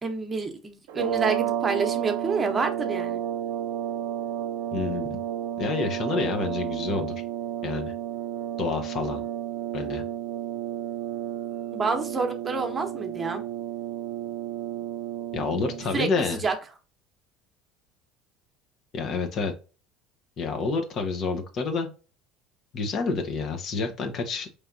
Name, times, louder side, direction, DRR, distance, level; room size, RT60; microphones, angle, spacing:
voice 1, 0.0-3.2 11.7-13.4 15.9-16.5, right 4 dB, 25° right, 5 dB, 1.0 m, -28 dB
sound 1, 0.9-16.0, right 11 dB, 80° right, 0.4 m, -32 dB
voice 2, 4.7-5.2 5.6-7.1 7.6-7.9 8.6-9.2 9.7-10.0 15.3-16.4 18.9-19.5 20.4-21.9 22.7-24.6, left 4 dB, 50° left, 5 dB, 1.0 m, -28 dB
4.5 x 3.3 x 2.6 m, 0.35 s
hypercardioid pair, 85°, 0 cm